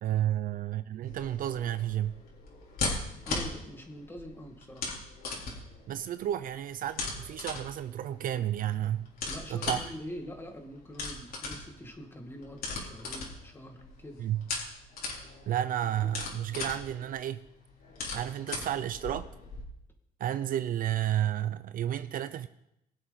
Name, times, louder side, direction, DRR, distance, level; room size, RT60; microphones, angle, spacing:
voice 1, 0.0-2.2 5.9-9.1 9.5-9.8 14.2-14.4 15.5-17.4 18.1-19.3 20.2-22.5, right 11 dB, 55° right, 0.6 m, -31 dB
sound 1, 1.0-19.6, left 3 dB, 60° left, 3.8 m, -39 dB
voice 2, 3.3-5.0 9.3-14.2, equal, 15° left, 2.2 m, -44 dB
21.0 x 7.8 x 4.2 m
cardioid pair, 110°, 17 cm